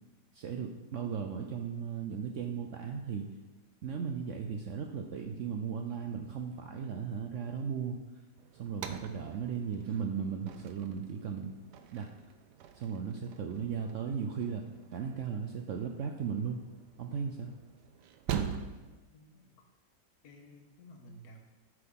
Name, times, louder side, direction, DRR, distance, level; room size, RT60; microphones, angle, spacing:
voice 1, 0.3-3.3 3.8-8.0 8.5-11.5 11.9-12.1 12.7-16.6 17.0-17.5, right 6 dB, 70° right, 3 dB, 0.7 m, -36 dB
sound 1, 8.4-19.0, right 8 dB, 90° right, 1.2 m, -44 dB
voice 2, 19.0-19.5 20.2-21.4, equal, 70° left, 2 dB, 1.5 m, -54 dB
7.8 x 6.1 x 3.7 m, 1.1 s
omnidirectional pair, 1.8 m